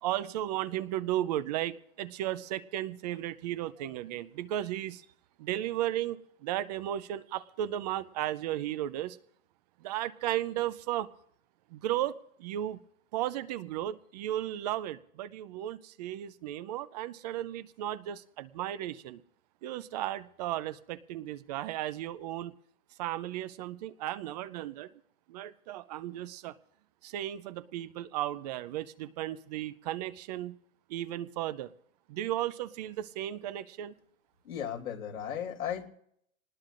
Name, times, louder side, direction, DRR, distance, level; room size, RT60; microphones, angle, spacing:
voice 1, 0.0-5.1 5.4-9.2 9.8-11.1 11.7-12.8 13.1-19.2 19.6-22.5 23.0-24.9 25.3-26.6 27.0-30.6 30.9-31.7 32.1-33.9, right 13 dB, 30° right, 15 dB, 0.5 m, -35 dB
voice 2, 34.4-35.9, left 9 dB, 85° left, 2 dB, 3.0 m, -35 dB
24.5 x 19.5 x 2.5 m, 0.68 s
hypercardioid pair, 140°, 41 cm